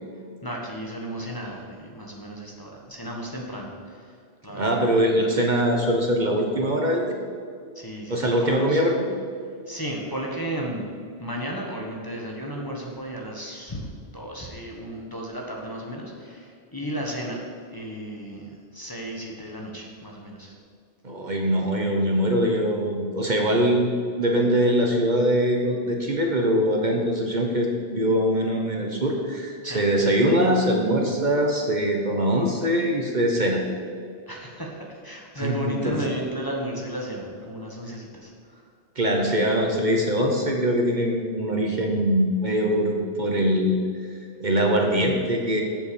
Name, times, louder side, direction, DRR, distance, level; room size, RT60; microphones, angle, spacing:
voice 1, 0.4-4.2 4.4-4.8 7.7-8.8 9.7-10.8 11.2-13.9 14.1-17.5 17.7-20.5 29.6-29.8 34.3-38.7, equal, 20° left, -1 dB, 1.4 m, -34 dB
voice 2, 4.5-7.2 8.1-8.9 21.0-23.9 24.2-33.6 35.4-36.0 39.0-43.8 44.4-45.6, equal, 45° right, 1 dB, 1.2 m, -22 dB
8.1 x 7.2 x 6.9 m, 2.2 s
omnidirectional pair, 1.1 m